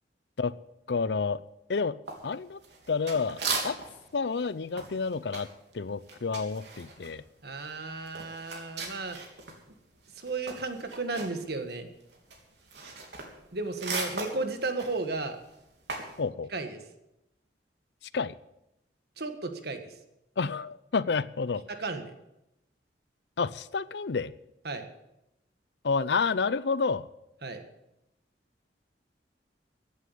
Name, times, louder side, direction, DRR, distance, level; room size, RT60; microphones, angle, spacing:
voice 1, 0.9-1.4 1.7-2.0 2.2-2.6 2.9-3.4 3.6-3.8 4.1-5.5 5.7-7.2 16.2-16.5 18.1-18.3 20.4-21.6 23.4-24.3 25.8-27.1, left 4 dB, 75° left, 17 dB, 0.6 m, -29 dB
sound 1, 2.1-4.1 4.4-9.6 9.9-16.2, right 4 dB, 80° right, 3.3 m, -38 dB
voice 2, 7.4-9.2 10.2-11.9 13.5-15.4 16.5-16.8 19.2-19.9 21.7-22.1 24.6-24.9 27.4-27.6, right 3 dB, 60° right, 7 dB, 1.7 m, -34 dB
15.5 x 8.4 x 8.1 m, 0.88 s
head